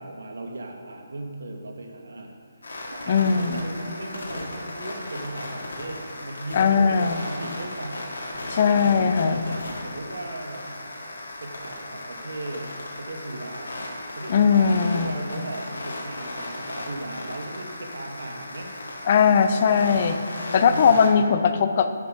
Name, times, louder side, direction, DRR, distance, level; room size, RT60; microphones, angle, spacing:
voice 1, 0.0-8.2 8.7-10.8 11.4-12.7 13.0-19.0 19.4-21.0, right 2 dB, 65° right, 3 dB, 1.3 m, -37 dB
sound 1, 2.6-21.1, left 1 dB, 80° left, 1.8 m, -36 dB
voice 2, 3.1-3.7 6.5-7.2 8.5-9.4 14.3-15.2 19.1-20.2 20.5-21.9, left 6 dB, 25° left, 9 dB, 0.4 m, -19 dB
9.9 x 6.0 x 4.9 m, 2.1 s
hypercardioid pair, 180°, 0 cm